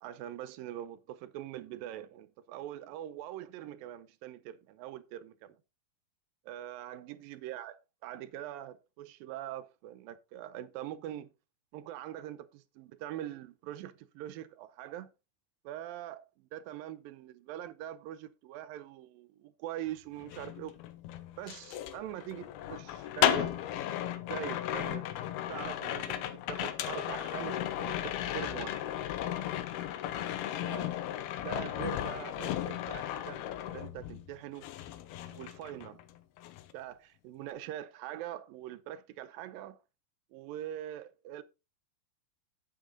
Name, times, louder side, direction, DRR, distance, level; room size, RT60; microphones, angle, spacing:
voice 1, 0.0-5.6 6.5-7.8 8.0-11.3 11.7-15.1 15.6-20.8 21.4-23.5 24.1-25.0 25.5-28.8 30.6-31.0 31.4-34.7 35.3-36.0 36.7-39.8 40.3-41.4, right 12 dB, 75° right, 2.3 m, -43 dB
sound 1, 20.2-34.3 34.6-36.1 36.4-36.7, left 11 dB, 85° left, 2.8 m, -35 dB
8.9 x 8.1 x 3.8 m
omnidirectional pair, 4.4 m